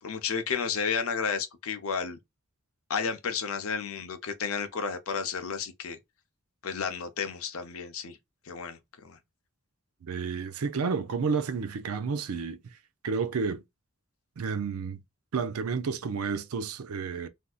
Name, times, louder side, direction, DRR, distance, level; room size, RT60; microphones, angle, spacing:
voice 1, 0.0-2.2 2.9-6.0 6.6-8.2 8.4-8.8 9.0-9.2, left 6 dB, 75° left, 0.6 m, -32 dB
voice 2, 10.0-12.6 13.0-13.6 14.4-15.0 15.3-17.3, right 5 dB, 80° right, 0.5 m, -31 dB
3.4 x 2.6 x 2.3 m
head